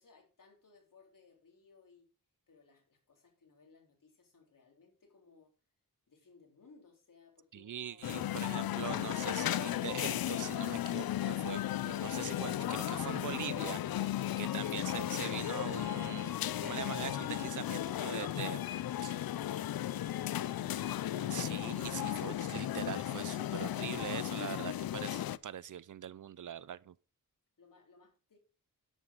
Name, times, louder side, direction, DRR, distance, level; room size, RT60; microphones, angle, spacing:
voice 1, 0.0-2.1 2.5-5.5 6.1-8.1 27.6-28.4, left 4 dB, 65° left, 3.9 m, -62 dB
voice 2, 7.5-18.6 19.0-19.2 21.3-26.9, right 9 dB, 60° right, 0.6 m, -42 dB
sound 1, 8.0-25.4, left 12 dB, 90° left, 0.5 m, -35 dB
9.8 x 9.0 x 3.9 m
wide cardioid pair, 80°, 35 cm